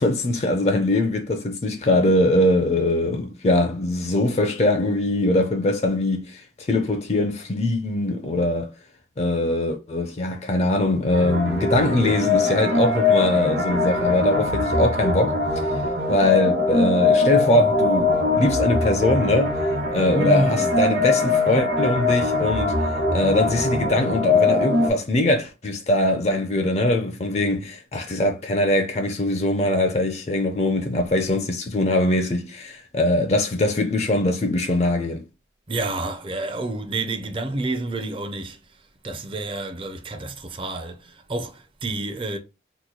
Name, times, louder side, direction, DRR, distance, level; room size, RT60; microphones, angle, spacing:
voice 1, 0.0-8.7 9.2-15.7 16.1-19.5 19.9-22.8 23.1-35.2, left 1 dB, 35° left, 0.4 m, -22 dB
sound 1, 11.1-24.9, left 3 dB, 65° right, 1.2 m, -22 dB
voice 2, 20.1-20.9 35.7-38.6 39.0-42.4, right 2 dB, 30° right, 0.4 m, -28 dB
2.9 x 2.2 x 3.7 m
head